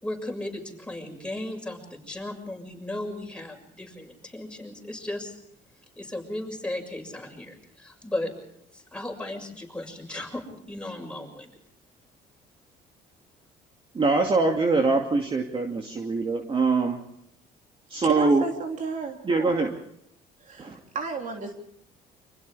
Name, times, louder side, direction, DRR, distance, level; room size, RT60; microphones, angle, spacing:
voice 1, 0.0-5.4 6.0-8.3 8.7-11.5, left 1 dB, 5° left, 6.6 m, -36 dB
voice 2, 13.9-17.0 17.9-18.4 19.2-19.7 20.6-20.7, right 3 dB, 30° right, 2.5 m, -23 dB
voice 3, 18.0-19.2 20.4-21.5, right 4 dB, 45° right, 3.4 m, -32 dB
29.5 x 25.5 x 3.6 m
cardioid pair, 110°, 17 cm